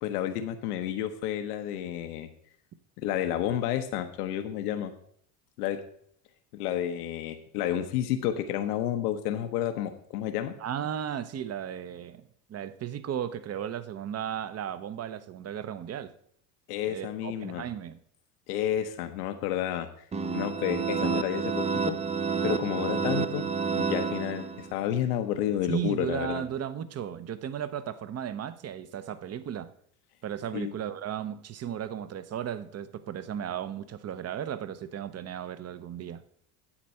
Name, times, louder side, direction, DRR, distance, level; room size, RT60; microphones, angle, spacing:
voice 1, 0.0-2.3 3.0-4.9 5.6-5.8 6.5-10.5 16.7-17.6 18.5-20.1 20.3-22.0 22.4-26.4 30.5-30.7, left 11 dB, 85° left, 1.0 m, -31 dB
voice 2, 10.6-12.2 12.5-16.1 16.9-18.0 22.6-22.7 25.7-29.7 30.2-36.2, right 9 dB, 35° right, 0.8 m, -35 dB
sound 1, 20.1-24.9, right 5 dB, 15° right, 0.5 m, -29 dB
10.0 x 7.7 x 4.3 m
supercardioid pair, 95°, 45 cm